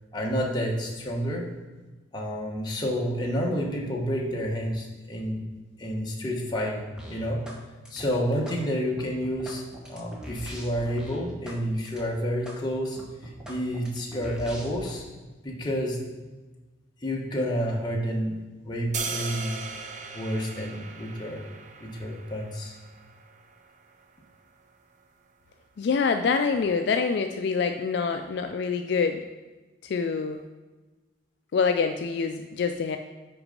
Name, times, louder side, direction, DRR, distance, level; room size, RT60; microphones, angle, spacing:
voice 1, 0.1-1.4 2.1-5.4 5.8-7.4 7.9-9.6 9.9-15.0 15.4-16.0 17.0-18.4 18.6-19.6 20.1-21.4 21.8-22.7, equal, 20° left, -2 dB, 1.1 m, -29 dB
sound 1, 7.0-7.6 7.9-8.6 9.0-11.6 11.9-12.1 12.5-12.6 13.0-15.0, equal, 5° right, 0.9 m, -42 dB
sound 2, 18.9-25.0, right 5 dB, 40° right, 0.5 m, -39 dB
voice 2, 25.8-29.2 29.8-30.4 31.5-33.0, left 5 dB, 60° left, 6 dB, 0.3 m, -26 dB
5.9 x 5.2 x 5.1 m, 1.2 s
head